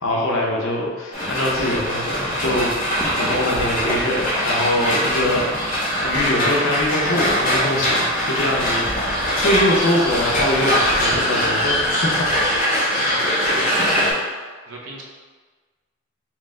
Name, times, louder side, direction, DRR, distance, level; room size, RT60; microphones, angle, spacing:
voice 1, 0.0-2.7 3.2-5.4 6.0-12.2, left 1 dB, 70° left, -2 dB, 0.8 m, -23 dB
sound 1, 1.1-14.1, equal, 40° left, 0.9 m, -22 dB
sound 2, 2.1-12.1, equal, 10° left, 0.4 m, -39 dB
voice 2, 12.9-13.8 14.7-15.0, right 3 dB, 70° right, -3 dB, 0.8 m, -35 dB
4.5 x 2.1 x 3.6 m, 1.4 s
head